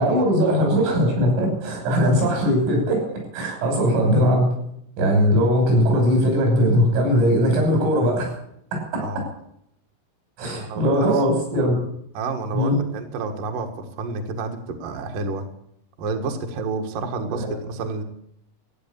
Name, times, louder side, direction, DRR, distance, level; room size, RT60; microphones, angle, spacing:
voice 1, 0.0-4.5 5.0-8.3 8.7-9.3 10.4-11.8 12.5-12.8 17.3-17.5, equal, 80° right, 1 dB, 9.0 m, -20 dB
voice 2, 10.5-11.2 12.1-15.4 16.0-18.0, right 4 dB, 60° right, 4 dB, 2.4 m, -30 dB
15.0 x 9.5 x 8.7 m, 0.72 s
omnidirectional pair, 5.8 m